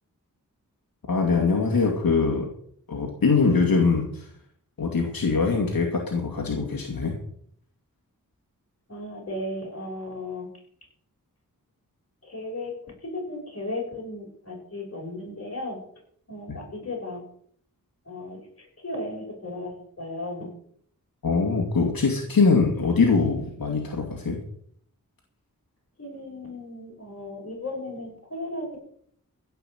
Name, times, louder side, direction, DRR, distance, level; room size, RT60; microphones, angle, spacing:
voice 1, 1.1-2.5 2.9-4.2 4.8-7.1 16.5-16.6 21.2-24.4, left 4 dB, 85° left, 0 dB, 2.5 m, -23 dB
voice 2, 8.9-10.5 12.3-12.7 13.0-15.8 16.3-17.2 18.1-18.4 18.8-20.5 26.0-28.8, left 1 dB, 45° left, -1 dB, 6.5 m, -35 dB
16.0 x 5.8 x 7.9 m, 0.64 s
wide cardioid pair, 95°, 34 cm